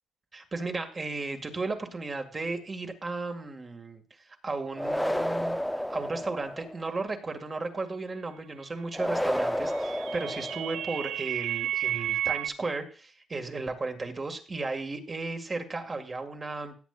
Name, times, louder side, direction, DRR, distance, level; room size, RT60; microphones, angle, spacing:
voice 1, 0.3-4.0 4.4-16.7, right 3 dB, 30° right, 6 dB, 1.9 m, -35 dB
sound 1, 4.8-6.8 8.9-11.0, equal, 5° left, 0.6 m, -31 dB
sound 2, 9.3-12.5, right 12 dB, 80° right, 0.5 m, -32 dB
17.5 x 8.3 x 2.4 m, 0.36 s
cardioid pair, 90°, 0 cm